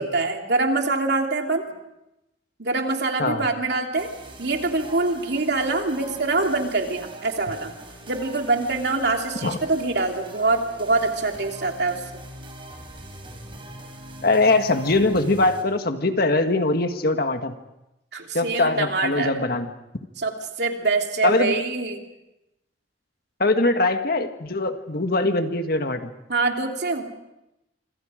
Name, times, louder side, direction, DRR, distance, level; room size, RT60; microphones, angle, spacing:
voice 1, 0.0-1.7 2.6-4.1 4.4-7.7 8.1-12.0 18.1-19.3 20.2-22.0 26.3-27.1, right 3 dB, 65° right, 3 dB, 3.0 m, -24 dB
sound 1, 4.0-15.6, right 1 dB, 30° right, 4.3 m, -42 dB
voice 2, 14.2-17.6 18.3-19.7 21.2-21.6 23.4-26.1, left 2 dB, 55° left, 7 dB, 1.7 m, -22 dB
26.5 x 26.5 x 5.1 m, 0.91 s
head